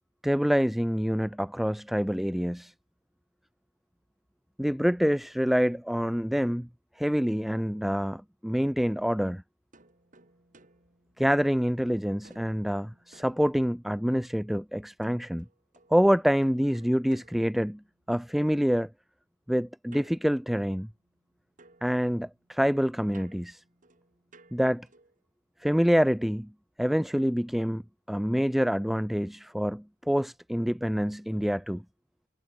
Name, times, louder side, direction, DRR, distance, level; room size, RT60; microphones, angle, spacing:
voice 1, 0.2-2.7 4.6-6.7 7.0-9.4 11.2-15.5 15.9-17.8 18.1-18.9 19.5-20.9 21.8-23.6 24.5-24.9 25.6-26.5 26.8-27.8 28.1-31.8, equal, ahead, 0.3 m, -26 dB
sound 1, 9.7-11.8 12.2-14.1 15.0-18.3 19.9-21.3 21.6-25.3, right 3 dB, 45° right, 3.4 m, -60 dB
head